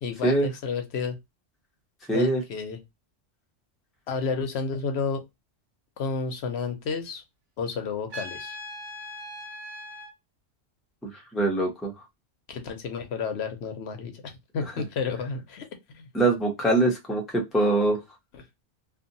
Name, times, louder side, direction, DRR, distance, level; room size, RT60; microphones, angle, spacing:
voice 1, 0.0-1.2 2.1-2.8 4.1-5.2 6.0-7.2 7.6-8.6 12.5-15.7 15.9-16.1 18.3-18.4, left 5 dB, 65° left, 0.8 m, -31 dB
voice 2, 2.1-2.4 11.0-11.9 16.1-18.0, right 2 dB, ahead, 0.5 m, -23 dB
Trumpet, 8.1-10.1, left 1 dB, 80° right, 1.2 m, -39 dB
2.6 x 2.5 x 2.5 m
omnidirectional pair, 1.2 m